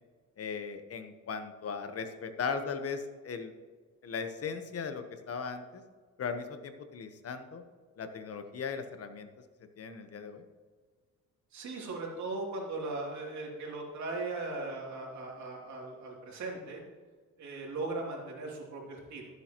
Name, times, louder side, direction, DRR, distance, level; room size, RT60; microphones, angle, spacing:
voice 1, 0.4-3.5 4.0-5.8 6.2-7.6 8.0-9.3 9.8-10.4, left 5 dB, 50° left, 8 dB, 1.1 m, -38 dB
voice 2, 11.5-16.8 17.4-19.3, right 3 dB, 65° right, -2 dB, 3.0 m, -38 dB
14.0 x 7.8 x 3.0 m, 1.5 s
cardioid pair, 90°, 30 cm